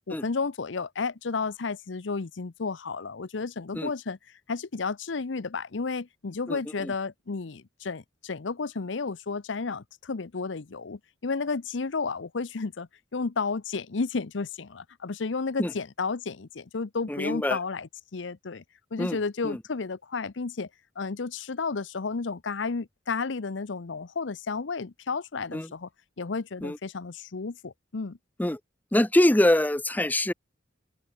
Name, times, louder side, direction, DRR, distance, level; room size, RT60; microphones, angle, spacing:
voice 1, 0.0-4.2 4.5-18.6 18.9-20.7 21.0-25.9 26.2-28.2, left 4 dB, 75° left, 0.7 m, -32 dB
voice 2, 6.5-6.9 15.6-15.7 17.1-17.6 19.0-19.2 19.4-19.6 25.5-25.7 26.6-26.8 28.4-28.6 28.9-30.3, left 1 dB, 10° left, 0.6 m, -24 dB
open air
head